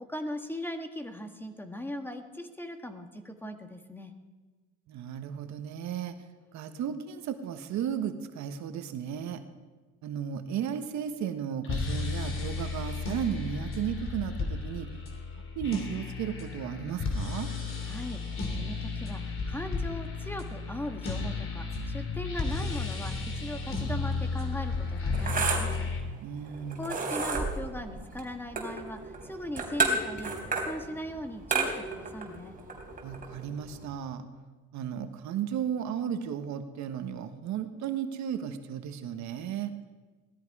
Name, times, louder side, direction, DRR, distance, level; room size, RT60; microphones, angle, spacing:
voice 1, 0.1-4.1 17.8-25.9 26.8-32.6, left 1 dB, 5° left, 6 dB, 1.7 m, -39 dB
voice 2, 4.9-6.2 6.5-9.4 10.0-14.9 15.5-17.5 26.2-27.0 33.0-34.3 34.7-39.7, right 8 dB, 70° right, 8 dB, 1.3 m, -34 dB
sound 1, 11.6-26.0, left 4 dB, 45° left, 3.0 m, -33 dB
sound 2, 24.1-33.9, right 3 dB, 30° right, 3.7 m, -33 dB
17.5 x 13.5 x 4.8 m, 1.3 s
cardioid pair, 100°, 30 cm